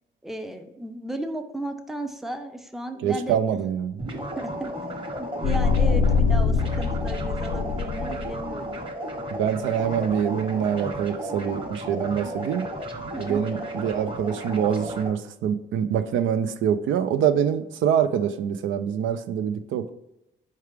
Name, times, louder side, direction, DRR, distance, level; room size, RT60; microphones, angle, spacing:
voice 1, 0.2-3.6 4.4-4.7 5.2-8.8 13.1-13.4, right 1 dB, ahead, 6 dB, 0.5 m, -34 dB
voice 2, 3.0-4.0 9.4-12.7 13.2-19.9, right 8 dB, 75° right, 10 dB, 0.4 m, -25 dB
sound 1, 4.0-15.1, right 1 dB, 25° right, 1.2 m, -33 dB
sound 2, 5.4-8.6, left 5 dB, 75° left, 0.6 m, -23 dB
4.7 x 3.3 x 3.3 m, 0.89 s
cardioid pair, 90°, 20 cm